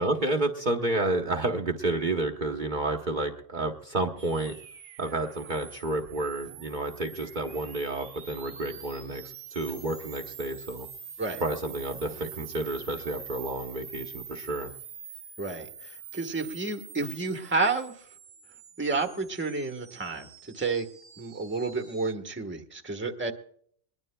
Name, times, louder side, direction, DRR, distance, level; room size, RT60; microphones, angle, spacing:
voice 1, 0.0-4.5 5.0-10.9 11.4-14.7, right 2 dB, 45° right, 4 dB, 1.0 m, -30 dB
sound 1, 4.2-22.1, right 7 dB, 85° right, 1.4 m, -46 dB
voice 2, 15.4-18.0 18.8-20.9 21.2-23.3, right 3 dB, 10° right, 4 dB, 1.1 m, -30 dB
21.0 x 21.0 x 2.2 m, 0.62 s
omnidirectional pair, 1.2 m